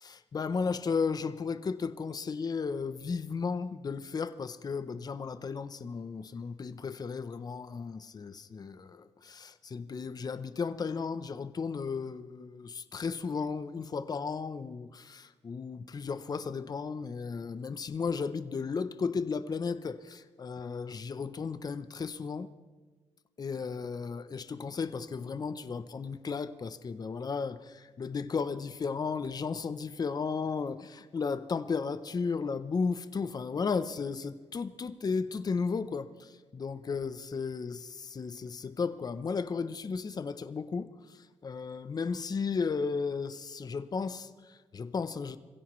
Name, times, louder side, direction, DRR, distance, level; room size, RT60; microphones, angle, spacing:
voice 1, 0.0-22.5 23.4-45.4, left 5 dB, 35° left, 0.7 m, -34 dB
25.5 x 16.0 x 3.1 m
cardioid pair, 125°, 12 cm